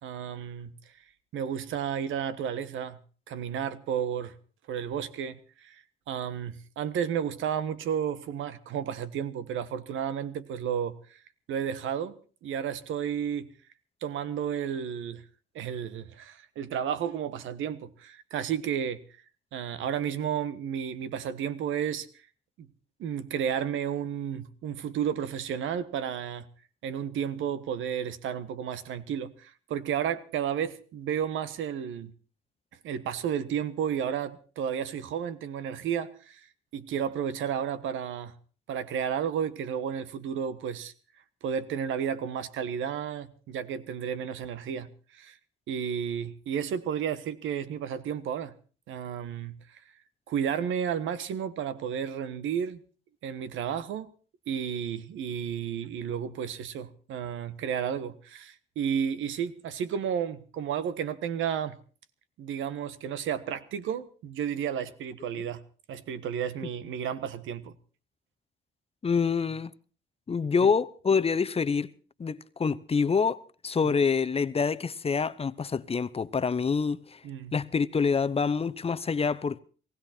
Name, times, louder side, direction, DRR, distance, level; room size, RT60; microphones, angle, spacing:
voice 1, 0.0-0.7 1.3-3.0 3.3-4.3 4.7-11.2 11.5-13.5 14.0-15.2 15.5-19.0 19.5-22.1 23.0-26.5 26.8-32.1 32.8-36.4 36.7-38.3 38.7-40.9 41.4-45.4 45.7-48.5 48.9-49.8 50.3-52.8 53.2-54.1 54.5-61.8 62.4-65.6 65.9-67.7 77.2-77.5, right 8 dB, 85° right, 1.4 m, -32 dB
voice 2, 69.0-69.7 70.3-71.9 72.2-77.2 77.5-79.6, left 5 dB, 30° left, 0.8 m, -26 dB
19.0 x 16.5 x 4.4 m
cardioid pair, 90°, 20 cm